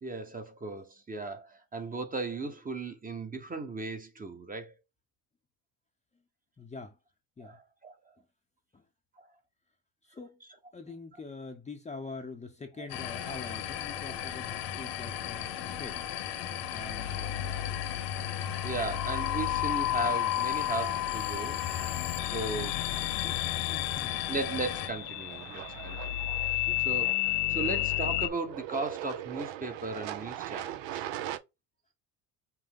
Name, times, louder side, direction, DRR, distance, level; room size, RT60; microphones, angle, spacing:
voice 1, 0.0-4.7 7.4-7.9 9.2-9.3 14.1-14.2 17.4-17.5 18.6-21.6 22.3-22.7 24.3-31.0, right 3 dB, 20° right, 0.9 m, -37 dB
voice 2, 6.6-7.0 7.4-7.6 8.7-8.8 10.0-10.4 10.7-16.1 16.7-17.4 23.1-23.4 23.7-24.2 26.7-26.8 27.5-27.7, left 3 dB, 15° left, 0.7 m, -44 dB
sound 1, 12.9-24.9, left 10 dB, 65° left, 1.2 m, -37 dB
sound 2, 16.6-28.3, left 15 dB, 90° left, 0.6 m, -32 dB
sound 3, 20.7-31.4, right 12 dB, 75° right, 0.7 m, -43 dB
5.6 x 2.1 x 3.6 m
cardioid pair, 105°, 43 cm